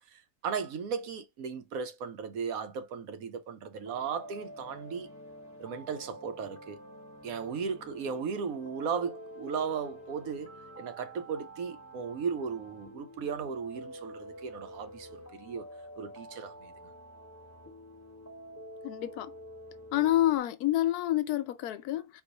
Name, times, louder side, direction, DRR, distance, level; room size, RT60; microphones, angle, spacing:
voice 1, 0.1-5.1 5.6-6.8 7.2-10.5 10.8-15.6 16.0-16.7, right 6 dB, 70° right, 1.1 m, -36 dB
sound 1, 3.8-20.4, equal, 10° left, 1.1 m, -48 dB
voice 2, 18.8-19.3 19.9-22.2, left 14 dB, 80° left, 1.1 m, -28 dB
4.6 x 2.4 x 3.9 m
omnidirectional pair, 1.6 m